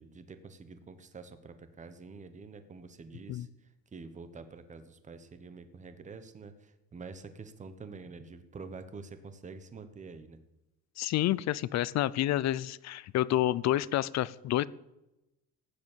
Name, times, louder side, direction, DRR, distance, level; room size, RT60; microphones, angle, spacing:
voice 1, 0.0-10.4, right 4 dB, 20° right, 10 dB, 1.1 m, -47 dB
voice 2, 11.0-14.7, left 14 dB, 45° left, 21 dB, 0.5 m, -29 dB
16.0 x 9.5 x 7.3 m, 0.95 s
cardioid pair, 170°, 39 cm